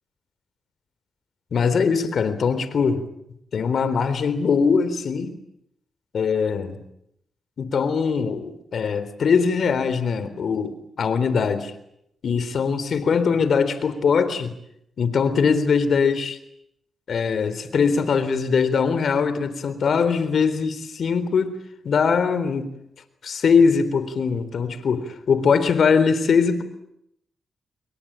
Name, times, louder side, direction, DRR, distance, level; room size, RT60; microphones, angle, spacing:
voice 1, 1.5-3.0 3.5-5.3 6.1-6.8 7.6-11.7 12.2-14.5 15.0-16.4 17.1-21.6 21.8-22.7 23.2-26.6, left 5 dB, 65° left, 13 dB, 3.8 m, -21 dB
28.5 x 23.0 x 8.9 m, 0.78 s
cardioid pair, 65°, 0 cm